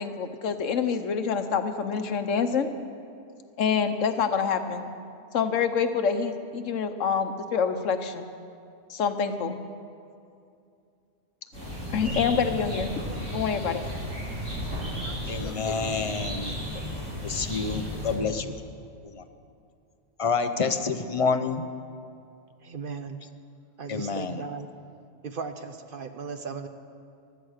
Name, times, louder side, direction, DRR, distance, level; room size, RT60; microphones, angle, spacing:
voice 1, 0.0-2.7 3.6-4.9 5.3-8.3 8.9-9.6 11.9-12.9 13.3-13.9, left 6 dB, 85° left, 8 dB, 1.2 m, -26 dB
sound 1, 11.5-18.1, equal, 75° right, 5.3 m, -34 dB
voice 2, 15.0-16.8 17.2-18.6 19.0-19.3 20.2-21.7 23.9-24.4, left 5 dB, 35° left, 9 dB, 0.6 m, -28 dB
voice 3, 17.9-18.6 22.6-23.2 23.8-24.7 25.2-26.7, right 5 dB, 55° right, 8 dB, 0.8 m, -37 dB
15.5 x 12.0 x 6.5 m, 2.5 s
omnidirectional pair, 1.3 m